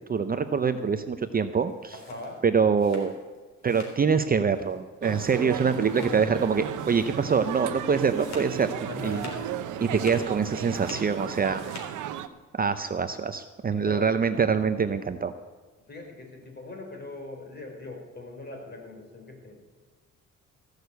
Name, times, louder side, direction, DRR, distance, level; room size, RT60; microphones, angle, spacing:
voice 1, 0.1-1.9 2.4-3.1 3.6-8.7 9.0-9.2 9.8-11.6 12.6-15.3, right 6 dB, 30° right, 10 dB, 0.7 m, -25 dB
sound 1, 1.7-4.1 4.4-4.8 5.0-5.2 5.8-6.4 6.8-7.2 7.5-9.5 9.8-11.1 11.4-12.0, left 3 dB, 65° left, 3.7 m, -46 dB
voice 2, 1.9-2.4 5.7-6.3 8.9-9.5 13.7-14.0 15.9-19.5, left 2 dB, 35° left, 1 dB, 4.5 m, -40 dB
sound 2, 5.0-12.3, right 10 dB, 85° right, 0.8 m, -35 dB
15.5 x 6.6 x 8.1 m, 1.4 s
cardioid pair, 90°, 30 cm